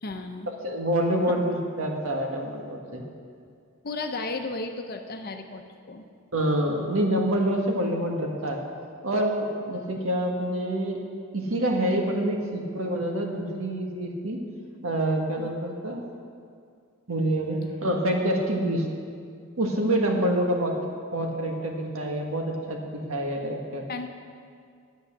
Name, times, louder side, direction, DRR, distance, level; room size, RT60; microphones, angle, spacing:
voice 1, 0.0-0.5 1.3-1.4 3.8-6.0 15.4-15.5 23.9-24.1, left 3 dB, 45° left, 5 dB, 0.8 m, -34 dB
voice 2, 0.6-3.0 6.3-8.6 9.0-11.0 11.3-14.4 14.8-16.0 17.1-18.8 19.6-20.7 21.1-23.8, right 1 dB, 75° right, 1 dB, 1.6 m, -26 dB
11.0 x 8.2 x 6.6 m, 2.2 s
head